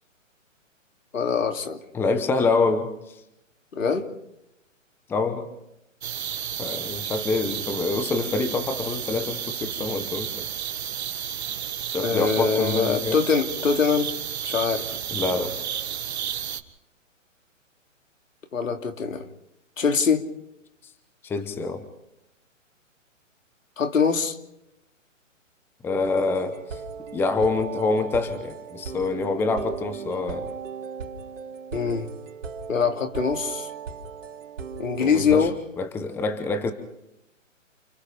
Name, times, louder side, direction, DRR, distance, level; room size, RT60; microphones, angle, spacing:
voice 1, 1.1-1.8 3.7-4.1 12.0-14.1 14.4-15.0 18.5-19.2 19.8-20.3 23.8-24.4 31.7-32.1 32.7-33.7 34.8-35.6, left 6 dB, 75° left, 6 dB, 2.7 m, -23 dB
voice 2, 1.9-3.2 5.1-5.5 6.6-10.5 11.9-13.2 15.1-15.5 21.2-21.8 25.8-26.8 27.1-30.5 35.0-36.7, left 3 dB, 5° left, 9 dB, 1.0 m, -26 dB
sound 1, 6.0-16.6, right 9 dB, 55° right, 1.7 m, -32 dB
sound 2, 26.0-35.5, right 6 dB, 70° right, 3.3 m, -37 dB
30.0 x 29.0 x 3.4 m, 0.86 s
hypercardioid pair, 150°, 39 cm